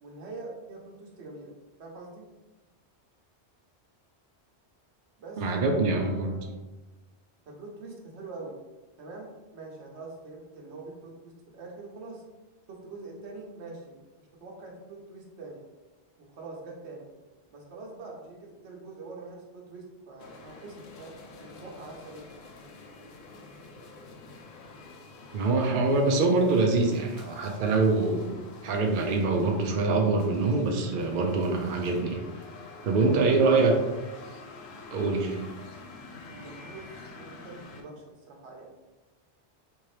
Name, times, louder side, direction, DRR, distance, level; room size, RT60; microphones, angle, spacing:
voice 1, 0.0-1.5 1.8-2.3 5.2-5.4 5.8-6.7 7.5-8.5 9.0-12.2 12.7-15.6 16.2-17.1 17.5-22.3 33.0-33.8 36.2-38.7, right 3 dB, 75° right, -1 dB, 1.1 m, -44 dB
voice 2, 5.4-6.3 25.3-32.2 32.8-33.7 34.9-35.4, right 3 dB, 60° right, 2 dB, 0.6 m, -24 dB
sound 1, 20.2-37.8, left 3 dB, 75° left, 0.8 m, -48 dB
3.5 x 2.8 x 3.2 m, 1.1 s
omnidirectional pair, 1.2 m